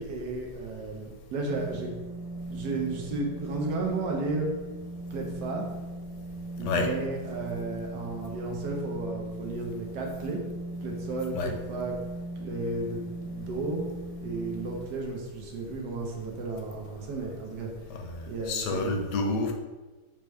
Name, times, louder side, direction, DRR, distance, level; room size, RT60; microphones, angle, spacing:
voice 1, 0.0-1.9 2.5-4.5 5.1-5.7 6.6-10.4 10.8-11.9 12.3-13.8 14.2-17.7 18.3-18.9, right 3 dB, 75° right, 0 dB, 1.3 m, -33 dB
sound 1, 1.5-14.8, right 1 dB, 15° right, 1.4 m, -39 dB
voice 2, 6.6-6.9 11.3-11.5 17.9-19.5, left 3 dB, 80° left, 3 dB, 1.2 m, -29 dB
4.2 x 3.5 x 3.2 m, 1.2 s
omnidirectional pair, 1.9 m